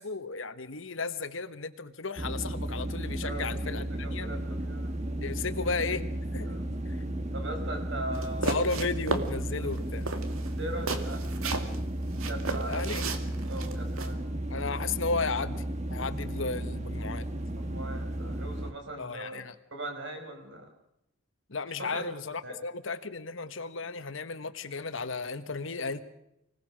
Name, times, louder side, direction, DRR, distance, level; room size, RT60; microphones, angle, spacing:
voice 1, 0.0-3.9 4.1-4.3 5.2-6.0 6.3-6.5 8.4-10.1 12.7-13.0 14.5-15.6 15.9-17.3 19.0-19.5 21.5-26.0, left 4 dB, 65° left, 11 dB, 1.2 m, -34 dB
sound 1, 2.2-18.7, right 1 dB, 35° right, 1.4 m, -34 dB
voice 2, 3.2-3.7 4.0-5.1 6.4-6.7 7.3-8.7 9.6-9.7 10.4-11.6 12.3-14.3 17.5-19.4 19.7-20.7 21.8-22.0 22.4-22.6, right 1 dB, 60° right, 4 dB, 5.2 m, -40 dB
sound 2, 8.1-9.3 9.7-9.8 10.1-11.8 12.2-14.1, right 3 dB, 85° right, 2.1 m, -33 dB
25.5 x 18.5 x 6.3 m, 0.81 s
head